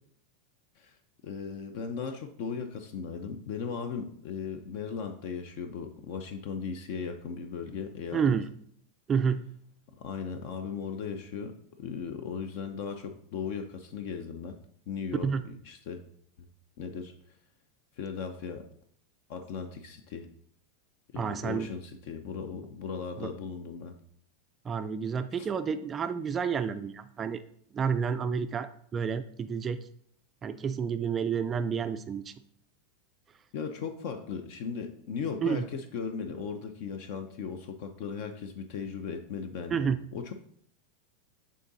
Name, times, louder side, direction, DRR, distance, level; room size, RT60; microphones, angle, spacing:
voice 1, 1.2-8.3 10.0-14.6 14.9-16.0 16.4-16.5 16.8-17.1 18.0-18.6 19.3-20.3 21.1-23.9 25.4-25.5 33.5-40.3, left 6 dB, 50° left, 7 dB, 0.7 m, -37 dB
voice 2, 8.1-8.5 9.1-9.5 15.2-15.4 21.1-21.7 23.2-23.3 24.6-27.4 27.7-29.8 30.4-32.3 35.4-35.6 39.7-40.0, right 6 dB, 20° right, 10 dB, 0.3 m, -30 dB
11.0 x 3.8 x 4.0 m, 0.64 s
supercardioid pair, 155°, 0 cm